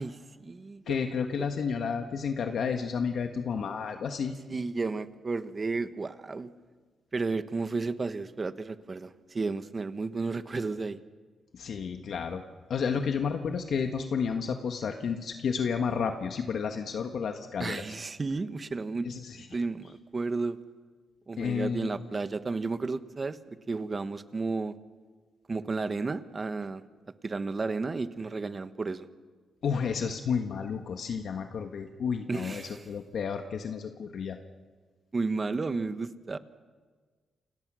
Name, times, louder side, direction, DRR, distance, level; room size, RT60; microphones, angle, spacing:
voice 1, 0.0-1.0 1.4-1.5 4.5-6.5 7.1-11.0 17.6-19.1 19.5-20.6 21.3-23.4 23.7-24.7 25.5-26.8 27.2-29.1 32.3-32.8 35.1-36.4, right 3 dB, 30° right, 11 dB, 1.3 m, -32 dB
voice 2, 0.9-4.3 11.5-12.4 12.7-17.8 19.0-19.5 21.4-22.0 29.6-34.4, left 6 dB, 65° left, 5 dB, 1.5 m, -31 dB
29.5 x 27.0 x 6.4 m, 1.5 s
cardioid pair, 110°, 0 cm